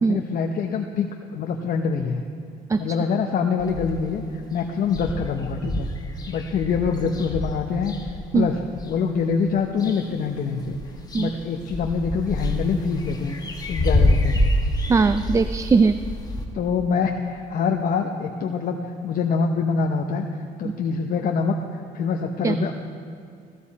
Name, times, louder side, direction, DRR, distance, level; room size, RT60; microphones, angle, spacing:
voice 1, 0.1-1.1 1.3-2.2 2.8-5.9 6.3-8.0 8.3-8.6 8.9-10.8 11.2-13.3 13.7-14.4 16.5-18.8 19.0-20.2 20.6-22.7, left 5 dB, 55° left, 3 dB, 0.9 m, -25 dB
sound 1, 3.6-4.2 4.6-4.7 4.9-8.9 9.4-10.3 10.6-16.4, left 1 dB, 25° left, 1.5 m, -26 dB
voice 2, 14.9-16.0 20.6-20.7 22.4-22.6, right 4 dB, 20° right, 11 dB, 0.3 m, -20 dB
16.0 x 13.0 x 4.2 m, 2.3 s
cardioid pair, 110°, 17 cm